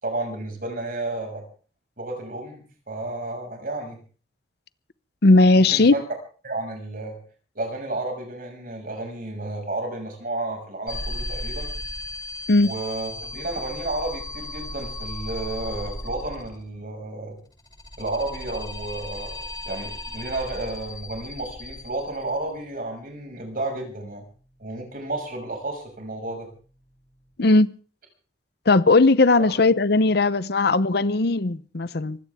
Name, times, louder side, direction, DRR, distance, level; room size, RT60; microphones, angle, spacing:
voice 1, 0.0-1.4 2.0-4.0 5.7-6.0 6.4-7.2 7.5-11.7 12.6-17.4 18.0-24.2 24.6-26.5 29.4-29.6, right 2 dB, 55° right, 6.5 m, -32 dB
voice 2, 5.2-6.0 12.5-12.7 27.4-27.8 28.7-32.2, left 2 dB, 65° left, 0.8 m, -18 dB
sound 1, 10.9-16.7 17.5-22.5, left 2 dB, 20° left, 6.5 m, -35 dB
23.0 x 17.0 x 3.6 m
head